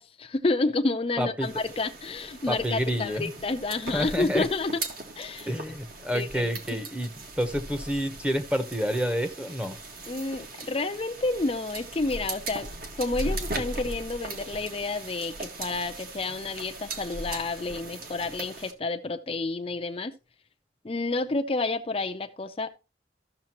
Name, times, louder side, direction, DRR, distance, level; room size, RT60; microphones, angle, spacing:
voice 1, 0.0-4.8 5.2-5.5 6.1-6.8 10.1-12.7 13.0-20.1 20.8-22.7, left 3 dB, 30° left, 0.5 m, -30 dB
voice 2, 1.2-1.5 2.5-3.3 3.9-4.5 5.5-7.1 7.4-9.8, equal, 5° right, 0.9 m, -28 dB
sound 1, 1.4-18.7, right 2 dB, 55° right, 1.7 m, -39 dB
14.0 x 6.7 x 2.9 m
head